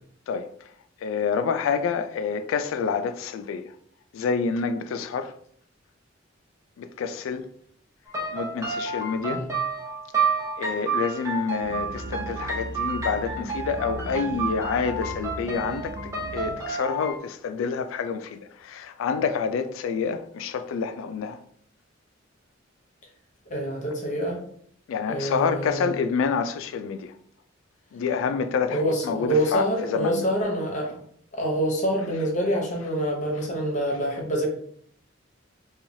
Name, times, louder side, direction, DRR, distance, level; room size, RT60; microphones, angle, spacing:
voice 1, 1.0-3.7 4.1-5.3 6.8-7.5 8.3-9.4 10.6-21.4 24.9-27.1 27.9-30.2, left 5 dB, 90° left, 0.3 m, -28 dB
sound 1, 8.1-17.2, right 4 dB, 15° right, 0.6 m, -30 dB
sound 2, 11.6-17.1, right 1 dB, 70° right, 0.4 m, -38 dB
voice 2, 23.5-24.4 25.1-25.9 28.7-31.0 31.3-34.5, right 1 dB, 40° left, 0.8 m, -26 dB
3.1 x 2.3 x 2.6 m
head